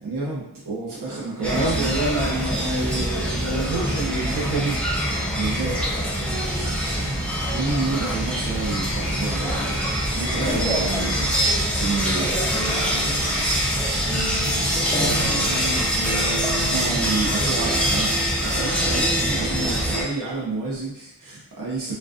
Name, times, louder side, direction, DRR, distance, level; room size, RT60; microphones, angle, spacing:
voice 1, 0.0-2.0 2.8-3.2 5.4-5.7 6.4-7.2 7.5-11.4 11.7-12.6 16.7-21.9, right 3 dB, 55° right, -6 dB, 0.7 m, -30 dB
sound 1, 1.4-20.0, equal, 5° left, 0.5 m, -24 dB
voice 2, 1.4-4.7 10.3-10.6 15.0-15.8 17.4-17.7 18.8-19.8, right 2 dB, 80° right, -7 dB, 1.0 m, -28 dB
2.4 x 2.3 x 2.4 m, 0.79 s
wide cardioid pair, 65°, 40 cm